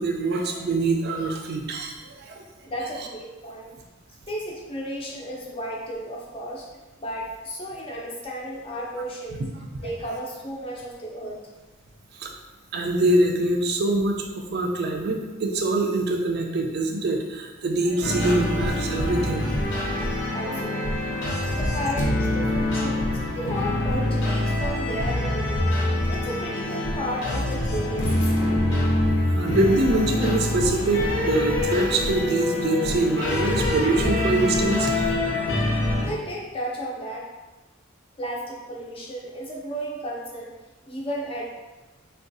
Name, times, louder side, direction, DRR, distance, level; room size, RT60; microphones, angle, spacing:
voice 1, 0.0-2.4 9.8-10.1 12.2-12.3 12.7-19.4 20.5-20.6 29.3-35.1, right 2 dB, 55° right, 3 dB, 0.4 m, -24 dB
voice 2, 2.6-3.8 4.3-6.7 7.0-9.5 9.8-11.4 20.0-21.2 21.5-25.7 26.1-28.6 36.0-37.3 38.2-40.5 40.9-41.5, equal, 30° left, -2 dB, 0.5 m, -33 dB
sound 1, 18.0-36.0, left 1 dB, 65° left, 0.7 m, -25 dB
3.6 x 2.3 x 2.6 m, 1.2 s
head